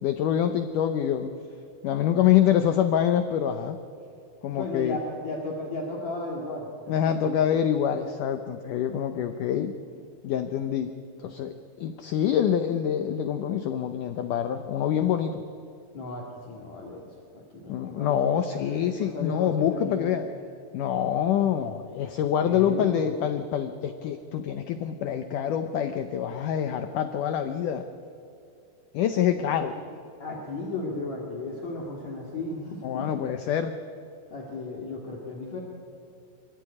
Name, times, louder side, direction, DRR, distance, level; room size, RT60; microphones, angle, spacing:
voice 1, 0.0-1.3 1.8-3.8 4.4-5.0 6.9-9.7 10.2-10.9 11.2-15.4 17.7-20.3 20.7-27.9 28.9-29.8 32.8-33.8, left 9 dB, 80° left, 8 dB, 1.8 m, -26 dB
voice 2, 4.5-7.3 15.9-18.2 18.5-20.2 22.4-23.1 29.7-29.8 30.2-33.1 34.3-35.6, left 2 dB, 50° left, -2 dB, 3.0 m, -35 dB
25.0 x 14.5 x 9.7 m, 2.6 s
omnidirectional pair, 4.8 m